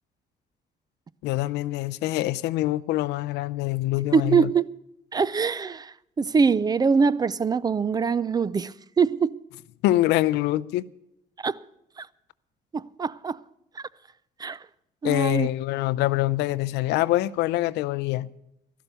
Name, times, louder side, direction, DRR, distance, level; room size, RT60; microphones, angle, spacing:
voice 1, 1.2-4.5 9.8-10.9 15.0-18.3, left 16 dB, 85° left, 0.5 m, -25 dB
voice 2, 4.1-4.7 5.1-9.4 11.4-11.6 12.0-12.1 12.7-13.4 13.8-13.9 14.4-14.6 15.0-15.5, right 5 dB, 25° right, 0.4 m, -23 dB
12.5 x 11.5 x 6.7 m
cardioid pair, 110°, 17 cm